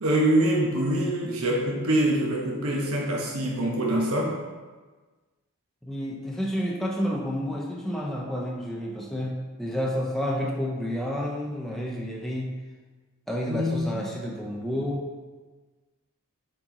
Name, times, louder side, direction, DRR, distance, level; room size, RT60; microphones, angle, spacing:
voice 1, 0.0-4.4 13.5-14.1, right 1 dB, 85° right, -3 dB, 1.2 m, -25 dB
voice 2, 5.8-12.6 13.3-15.1, equal, ahead, -3 dB, 0.6 m, -30 dB
7.6 x 4.6 x 3.9 m, 1.3 s
head